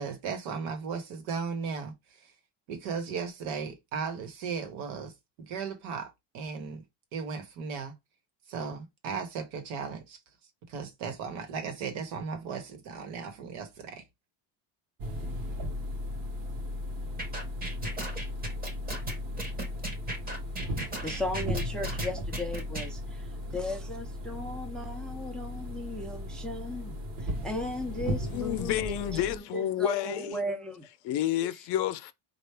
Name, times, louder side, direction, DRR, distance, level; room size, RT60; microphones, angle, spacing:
voice 1, 0.0-2.3 2.7-6.8 7.1-7.9 8.5-10.2 10.7-14.0, right 5 dB, 85° right, 1.2 m, -36 dB
sound 1, 15.0-29.4, left 1 dB, 50° right, 0.9 m, -36 dB
sound 2, 17.2-22.9, right 1 dB, 20° right, 0.8 m, -36 dB
voice 2, 21.0-30.9, left 1 dB, ahead, 0.3 m, -36 dB
voice 3, 28.2-30.4 31.0-32.1, left 12 dB, 60° left, 0.6 m, -30 dB
4.5 x 2.4 x 3.3 m
cardioid pair, 160°, 45 cm